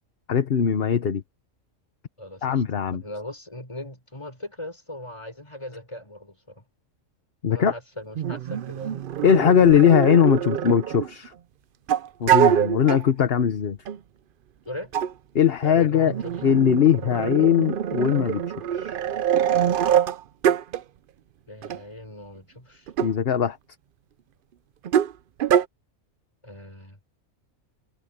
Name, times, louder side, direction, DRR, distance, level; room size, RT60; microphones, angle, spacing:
voice 1, 0.3-1.2 2.4-3.0 7.4-7.7 9.2-11.3 12.2-13.8 15.3-16.1 16.4-18.4 18.7-19.0 23.0-23.6, left 8 dB, 50° left, 1.1 m, -20 dB
voice 2, 2.2-2.6 2.9-6.6 7.5-9.0 14.6-14.9 15.6-16.4 21.5-22.9 26.4-27.0, left 1 dB, 20° left, 4.7 m, -39 dB
sound 1, 8.2-11.3 11.9-13.0 13.9-14.0 14.9-15.1 16.0-20.8 21.6-21.8 22.9-23.1 24.8-25.1 25.4-25.6, right 9 dB, 60° right, 0.5 m, -24 dB
omnidirectional pair, 1.4 m